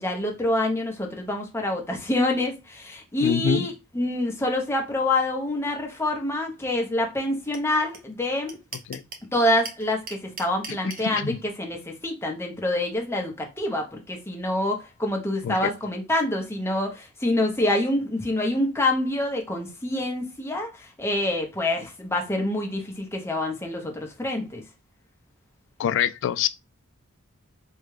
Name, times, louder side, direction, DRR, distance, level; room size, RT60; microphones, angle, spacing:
voice 1, 0.0-8.6 9.3-24.6, left 1 dB, 10° left, 0.7 m, -26 dB
voice 2, 3.2-3.7 8.9-9.0 10.7-11.4 15.4-15.7 25.8-26.5, left 8 dB, 55° left, 0.3 m, -25 dB
sound 1, 7.5-7.6 7.9-8.0 8.2-9.3 9.6-11.0, right 3 dB, 40° right, 0.7 m, -36 dB
3.5 x 2.2 x 3.2 m
head